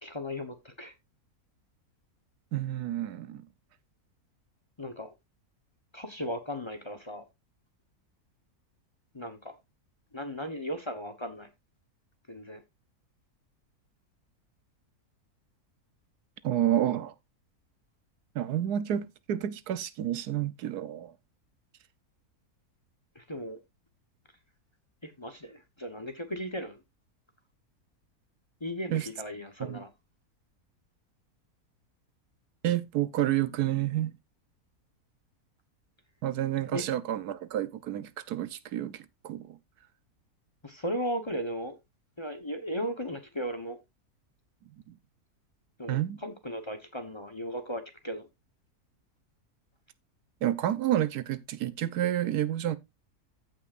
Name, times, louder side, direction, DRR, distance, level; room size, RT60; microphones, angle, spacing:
voice 1, 0.0-0.9 4.8-5.1 5.9-7.2 9.1-9.6 10.1-11.5 12.3-12.6 23.1-23.6 25.0-26.8 28.6-29.9 36.7-36.9 40.6-41.8 42.2-43.8 45.8-48.3, equal, 20° left, 1.0 m, -36 dB
voice 2, 2.5-3.5 16.4-17.1 18.3-21.1 28.9-29.1 29.6-29.8 32.6-34.2 36.2-39.6 44.9-45.0 45.9-46.2 50.4-52.8, right 12 dB, 90° right, 1.3 m, -29 dB
15.0 x 5.9 x 2.5 m
omnidirectional pair, 1.6 m